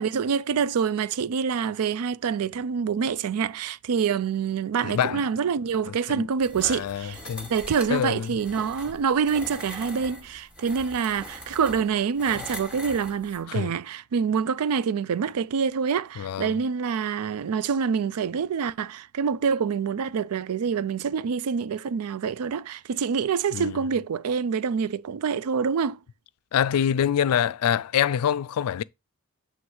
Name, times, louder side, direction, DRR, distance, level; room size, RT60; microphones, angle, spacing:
voice 1, 0.0-7.2 7.5-26.0, right 6 dB, 85° right, 0.4 m, -26 dB
voice 2, 4.8-5.2 6.1-6.3 6.6-7.5 7.9-8.3 13.5-13.7 16.2-16.5 23.5-23.8 26.5-28.8, left 9 dB, 90° left, 0.4 m, -25 dB
sound 1, 6.4-13.4, equal, 5° right, 1.0 m, -41 dB
7.8 x 3.2 x 4.7 m
head